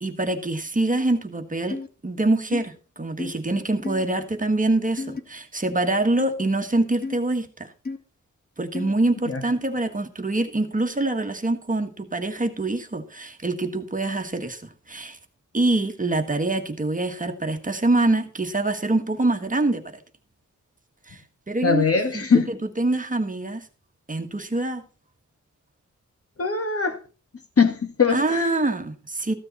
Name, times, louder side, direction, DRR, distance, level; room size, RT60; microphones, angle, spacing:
voice 1, 0.0-7.7 8.6-15.2 15.5-20.0 21.1-21.2 21.5-21.8 22.1-23.7 24.1-24.8 28.1-29.3, right 2 dB, 25° right, 1.3 m, -25 dB
sound 1, 1.7-1.9 2.5-2.6 3.2-3.3 3.8-4.1 5.0-5.2 6.2-6.3 7.0-7.2 7.9-8.0 8.7-8.9, left 3 dB, 30° left, 1.5 m, -31 dB
voice 2, 21.6-22.5 26.4-27.0 27.6-28.6, left 5 dB, 45° left, 1.6 m, -21 dB
14.5 x 9.8 x 4.1 m
wide cardioid pair, 165°, 32 cm